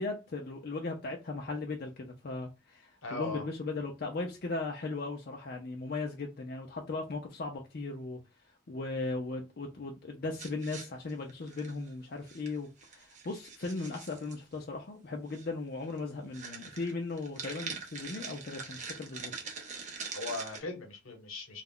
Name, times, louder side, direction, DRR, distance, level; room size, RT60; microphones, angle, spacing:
voice 1, 0.0-8.2 8.7-19.3, left 3 dB, 50° left, 0.4 m, -37 dB
voice 2, 3.0-3.5 20.1-21.6, left 3 dB, 80° left, 0.9 m, -39 dB
sound 1, 10.3-11.9 12.3-12.5 12.8-14.4 15.3-15.5 15.8-16.0 16.3-20.6, right 5 dB, 35° right, 0.6 m, -43 dB
2.3 x 2.1 x 3.5 m
head